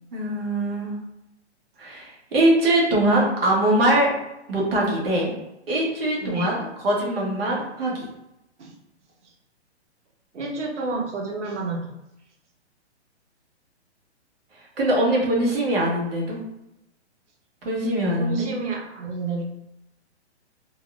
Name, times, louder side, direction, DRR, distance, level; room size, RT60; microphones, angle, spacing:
voice 1, 0.1-0.9 1.8-4.1 4.5-5.3 5.7-8.1 14.8-16.4 17.6-18.5, right 1 dB, 55° right, -3 dB, 1.3 m, -22 dB
voice 2, 6.2-6.5 8.6-8.7 9.2-9.3 10.3-11.9 18.2-19.4, right 3 dB, 85° right, -1 dB, 1.0 m, -29 dB
3.9 x 2.4 x 2.4 m, 0.88 s
hypercardioid pair, 175°, 35 cm